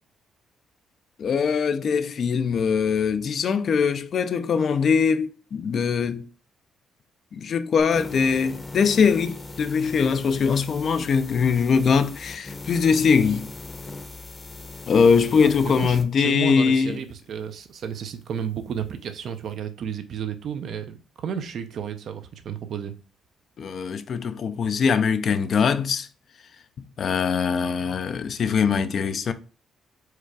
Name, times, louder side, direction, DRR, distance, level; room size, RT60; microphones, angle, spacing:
voice 1, 1.2-6.2 7.3-13.5 14.9-17.0 23.6-26.1 27.0-29.3, left 6 dB, 55° left, 0.5 m, -22 dB
sound 1, 7.8-16.1, left 2 dB, 25° left, 0.8 m, -39 dB
voice 2, 15.4-22.9, right 8 dB, 65° right, 0.7 m, -32 dB
4.6 x 2.4 x 4.7 m
cardioid pair, 90°, 0 cm